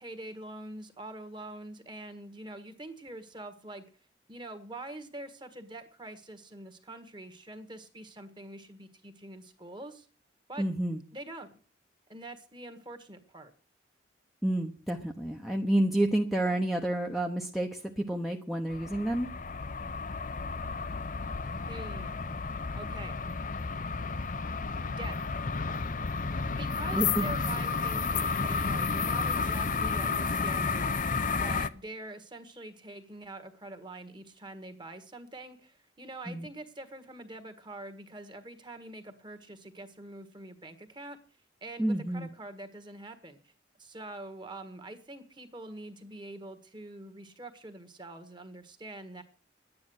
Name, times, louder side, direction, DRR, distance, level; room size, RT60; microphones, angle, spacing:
voice 1, 0.0-3.8 4.3-10.1 10.5-10.6 11.1-11.5 12.1-13.5 21.6-22.2 22.7-23.1 24.9-25.5 26.5-31.0 31.3-41.2 41.6-43.5 43.8-49.2, right 2 dB, 25° right, 9 dB, 1.6 m, -45 dB
voice 2, 10.6-11.0 14.4-19.3 26.9-27.3 36.3-36.5 41.8-42.3, right 1 dB, ahead, 1 dB, 0.9 m, -29 dB
sound 1, 18.7-31.7, left 4 dB, 45° left, 0.6 m, -32 dB
11.0 x 9.7 x 7.9 m, 0.40 s
head